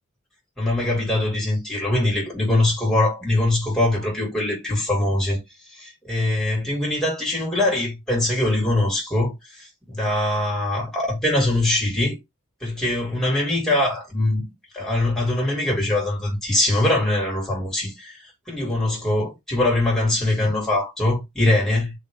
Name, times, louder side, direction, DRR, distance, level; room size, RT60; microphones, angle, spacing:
voice 1, 0.6-5.4 5.7-12.2 12.6-14.4 14.7-18.2 18.5-21.9, left 1 dB, ahead, 2.3 m, -22 dB
4.0 x 3.3 x 3.6 m
head